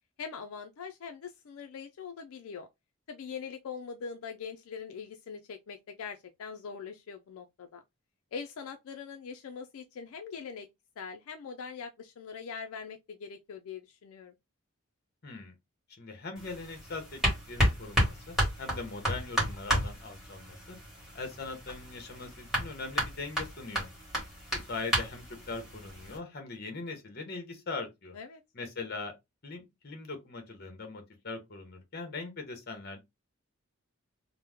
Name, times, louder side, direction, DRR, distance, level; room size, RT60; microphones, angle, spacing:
voice 1, 0.2-2.7 3.1-7.8 8.3-10.7 11.0-14.4 28.1-28.4, left 6 dB, 80° left, 0.4 m, -42 dB
voice 2, 15.2-15.5 16.0-17.2 17.5-20.8 21.1-23.9 24.5-28.2 28.5-29.1 29.4-33.0, left 3 dB, 45° left, 0.9 m, -41 dB
sound 1, 16.4-26.2, equal, ahead, 1.4 m, -32 dB
3.0 x 2.1 x 3.4 m
head